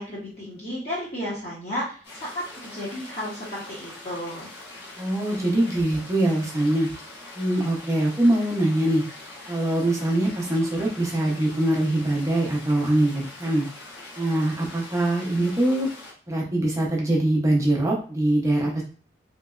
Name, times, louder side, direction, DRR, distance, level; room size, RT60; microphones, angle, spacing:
voice 1, 0.0-4.5, equal, 35° left, -7 dB, 0.9 m, -33 dB
sound 1, 2.0-16.1, left 2 dB, 65° left, 1.1 m, -43 dB
voice 2, 5.0-6.9 7.4-9.0 9.5-13.6 14.2-15.9 16.3-18.8, right 1 dB, 15° right, -2 dB, 0.7 m, -23 dB
3.3 x 2.9 x 2.4 m, 0.42 s
head